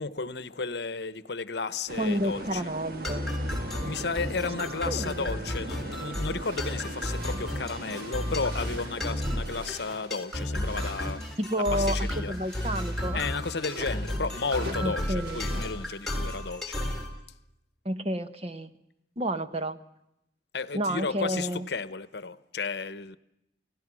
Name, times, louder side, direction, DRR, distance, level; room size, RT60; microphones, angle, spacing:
voice 1, 0.0-2.6 3.8-11.4 11.7-12.4 13.1-16.8 20.5-23.2, left 4 dB, 70° left, 15 dB, 0.9 m, -33 dB
sound 1, 1.9-9.7, right 2 dB, 55° right, 1.5 m, -41 dB
voice 2, 2.0-3.2 4.9-5.4 11.4-13.2 14.8-15.4 17.8-18.7 19.2-19.8 20.7-21.7, equal, 35° right, 10 dB, 1.1 m, -30 dB
sound 2, 3.0-17.1, left 1 dB, ahead, 3.9 m, -33 dB
sound 3, 6.4-16.6, equal, 75° right, 5.6 m, -45 dB
29.0 x 17.0 x 6.2 m, 0.85 s
head